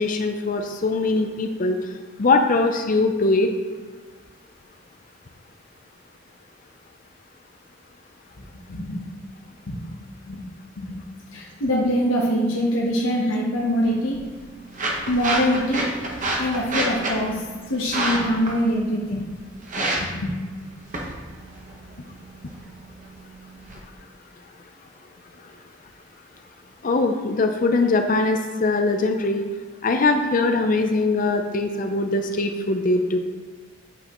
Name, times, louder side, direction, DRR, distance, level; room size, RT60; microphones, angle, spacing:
voice 1, 0.0-1.8 2.2-3.5 26.8-29.4 29.8-33.2, left 3 dB, 45° left, 5 dB, 0.5 m, -21 dB
voice 2, 8.7-9.0 9.7-9.9 10.3-10.4 10.8-10.9 11.3-14.2 15.1-15.9 16.4-17.4 17.7-19.3 19.9-20.3, equal, 85° left, -4 dB, 1.0 m, -23 dB
sound 1, 13.8-23.8, right 1 dB, 40° right, 1.0 m, -30 dB
8.4 x 5.5 x 3.0 m, 1.4 s
head